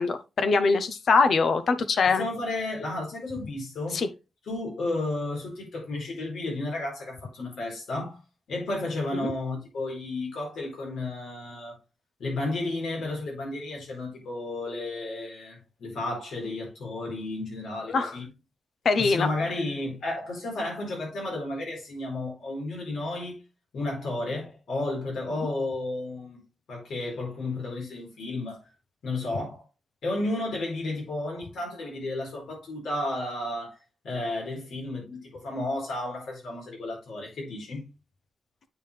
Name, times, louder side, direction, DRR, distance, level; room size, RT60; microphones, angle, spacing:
voice 1, 0.0-2.3 3.9-4.1 9.1-9.3 17.9-18.2 18.8-19.3, left 4 dB, 60° left, 0.7 m, -23 dB
voice 2, 2.1-4.0 4.5-8.2 8.5-11.8 12.2-18.2 19.0-23.4 23.7-26.4 26.7-28.6 29.0-29.6 30.0-33.8 34.0-37.9, left 2 dB, 80° left, 4.2 m, -32 dB
8.8 x 4.7 x 3.3 m
wide cardioid pair, 140°, 0 cm